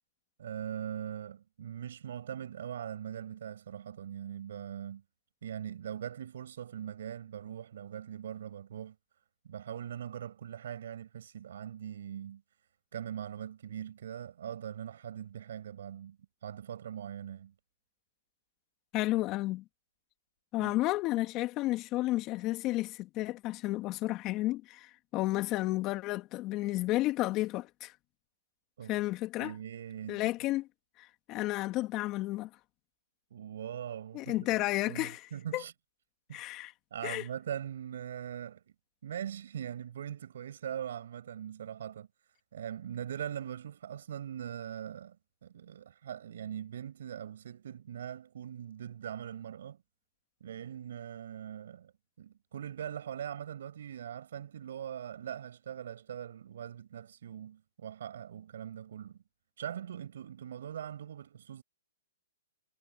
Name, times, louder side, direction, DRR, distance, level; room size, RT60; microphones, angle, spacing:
voice 1, 0.4-5.0 5.4-9.0 9.4-12.4 12.9-17.5 20.6-20.7 28.8-29.0 29.4-30.3 33.3-35.7 36.3-36.4 36.9-38.6 39.0-42.1 42.5-45.2 45.4-49.8 50.4-51.9 52.2-59.2 59.6-61.6, right 9 dB, 65° right, 7.0 m, -41 dB
voice 2, 18.9-19.6 20.5-27.9 28.9-29.5 30.1-30.7 31.0-32.5 34.1-35.6 36.3-36.7 37.0-37.2, left 18 dB, 30° left, 2.2 m, -32 dB
hypercardioid pair, 140°, 0 cm